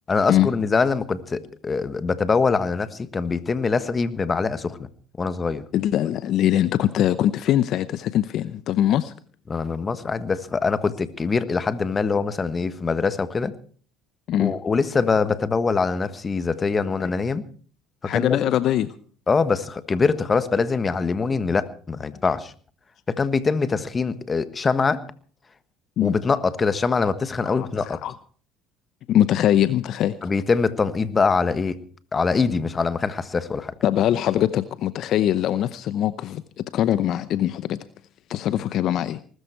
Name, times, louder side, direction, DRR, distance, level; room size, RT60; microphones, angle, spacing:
voice 1, 0.1-4.9 5.2-5.6 9.5-13.5 14.4-17.4 18.1-18.4 19.3-22.5 23.1-25.0 26.0-28.0 30.2-31.8 32.1-33.7, left 4 dB, 30° left, 13 dB, 1.4 m, -23 dB
voice 2, 5.7-9.1 14.3-14.5 18.0-18.9 26.0-26.1 27.4-28.1 29.1-30.2 33.8-36.4 36.7-37.8 38.3-39.2, left 11 dB, 60° left, 15 dB, 0.7 m, -22 dB
20.0 x 13.0 x 4.6 m, 0.44 s
supercardioid pair, 75°, 0 cm